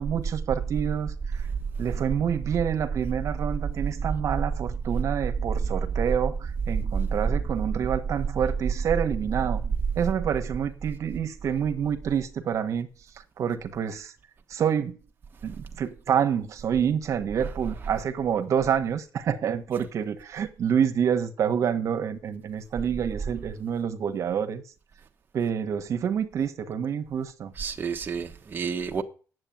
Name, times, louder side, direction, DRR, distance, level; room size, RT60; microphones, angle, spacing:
voice 1, 0.0-1.5 1.8-9.6 9.9-12.9 13.1-14.1 14.5-15.1 15.4-24.6 25.3-27.5, right 8 dB, 60° right, 1.3 m, -27 dB
voice 2, 1.9-2.4 3.9-4.4 6.8-7.2 7.6-7.9 8.3-8.4 8.8-8.9 17.4-17.9 19.8-19.9 27.6-29.0, right 5 dB, 35° right, 1.1 m, -31 dB
9.1 x 7.9 x 9.1 m
cardioid pair, 110°, 6 cm